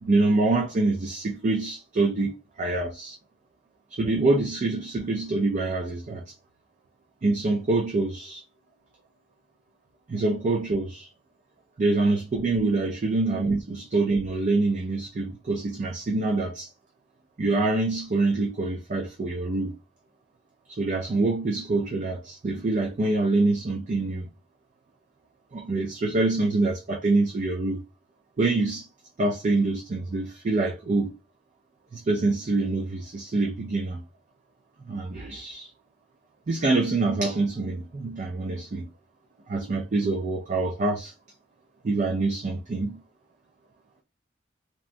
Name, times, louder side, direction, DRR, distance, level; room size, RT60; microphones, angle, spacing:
voice 1, 0.0-3.2 3.9-6.2 7.2-8.4 10.1-11.1 11.8-16.7 17.4-19.7 20.8-24.3 25.5-27.8 28.4-28.9 29.2-31.1 31.9-34.0 34.9-35.7 36.5-38.9 39.5-41.1 41.8-43.0, right 3 dB, 45° right, 0.4 m, -25 dB
2.8 x 2.2 x 2.5 m
head